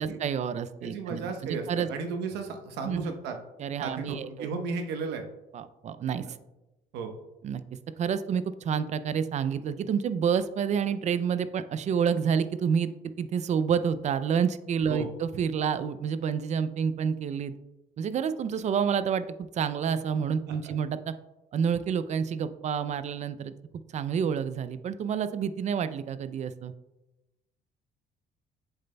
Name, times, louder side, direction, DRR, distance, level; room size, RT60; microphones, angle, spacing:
voice 1, 0.0-1.9 2.8-3.1 3.6-4.5 5.5-6.2 7.4-7.6 8.0-12.9 13.2-17.5 18.0-21.1 21.5-23.5 23.9-26.7, right 7 dB, 45° right, 13 dB, 0.4 m, -29 dB
voice 2, 0.8-3.4 3.8-5.3 6.9-7.1 14.9-15.1 20.5-20.7, right 4 dB, 85° right, 5 dB, 1.0 m, -34 dB
8.1 x 6.6 x 2.2 m, 0.99 s
cardioid pair, 110°, 17 cm